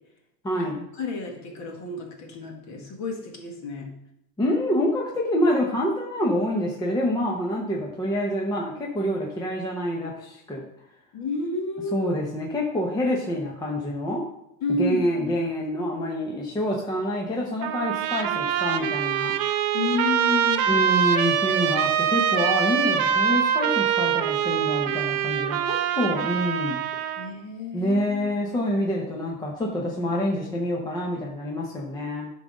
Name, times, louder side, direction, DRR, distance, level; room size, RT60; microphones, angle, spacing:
voice 1, 0.4-0.8 4.4-10.7 11.9-14.2 14.8-19.3 20.7-26.8 27.0-27.2 27.7-32.3, equal, 10° left, -2 dB, 0.8 m, -27 dB
voice 2, 1.0-3.9 11.1-12.1 14.6-15.3 16.4-16.5 19.7-20.9 27.2-28.3, left 3 dB, 35° left, 1 dB, 1.9 m, -30 dB
Trumpet, 17.6-27.3, right 9 dB, 60° right, 1.1 m, -24 dB
9.7 x 3.9 x 6.3 m, 0.82 s
supercardioid pair, 150°, 48 cm